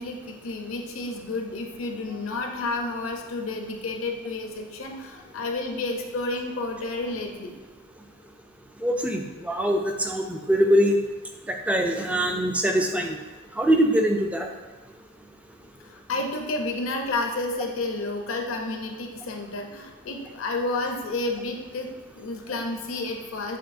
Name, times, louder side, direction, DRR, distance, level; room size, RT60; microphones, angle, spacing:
voice 1, 0.0-7.5 15.8-23.6, left 2 dB, 65° left, 3 dB, 0.6 m, -31 dB
voice 2, 8.8-11.0 11.5-13.2 13.6-14.5, equal, 5° right, 3 dB, 0.3 m, -23 dB
6.8 x 3.0 x 2.5 m, 1.3 s
head